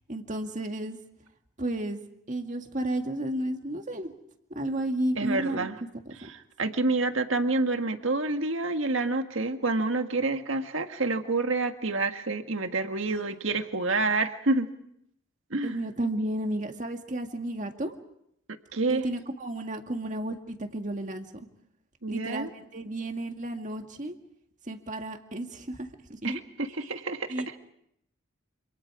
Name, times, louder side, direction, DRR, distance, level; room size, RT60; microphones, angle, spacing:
voice 1, 0.1-1.0 1.6-2.0 2.3-4.1 4.5-5.7 6.2-6.3 13.1-13.2 15.6-17.9 18.9-21.5 22.1-24.2 24.7-26.4 26.8-26.9 27.3-27.6, right 1 dB, 35° right, 5 dB, 1.9 m, -32 dB
voice 2, 5.2-5.8 6.3-14.7 15.5-15.7 18.7-19.0 22.0-22.5 26.2-27.3, right 3 dB, 70° right, 6 dB, 1.7 m, -28 dB
27.5 x 27.0 x 4.9 m, 0.75 s
head